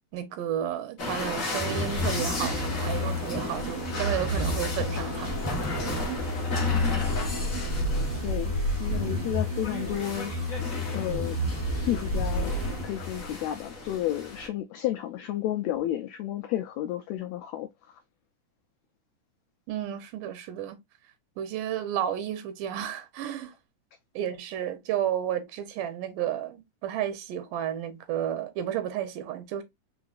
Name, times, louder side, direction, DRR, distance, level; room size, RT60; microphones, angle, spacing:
voice 1, 0.1-5.8 19.7-20.8 21.4-23.5 24.2-29.6, right 10 dB, 85° right, 2.3 m, -32 dB
sound 1, 1.0-14.5, left 1 dB, 65° left, 0.7 m, -32 dB
sound 2, 1.6-13.3, left 2 dB, 10° left, 0.7 m, -32 dB
voice 2, 8.8-11.4 11.9-12.5 12.8-17.7, left 13 dB, 90° left, 1.5 m, -32 dB
5.0 x 3.8 x 2.3 m
omnidirectional pair, 3.7 m